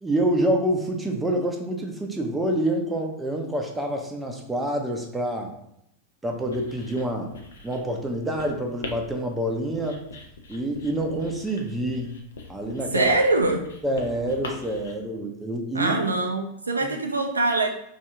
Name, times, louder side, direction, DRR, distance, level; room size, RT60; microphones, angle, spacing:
voice 1, 0.0-5.5 6.2-7.3 7.6-10.0 10.5-12.2 12.5-13.2 13.8-15.9, right 1 dB, 10° right, 2 dB, 0.5 m, -27 dB
Writing, 6.3-14.9, left 3 dB, 65° left, 0.5 m, -42 dB
voice 2, 12.9-13.6 15.7-17.7, right 2 dB, 80° right, 3 dB, 0.4 m, -23 dB
2.8 x 2.7 x 3.3 m, 0.78 s
figure-of-eight pair, 90°, 0 cm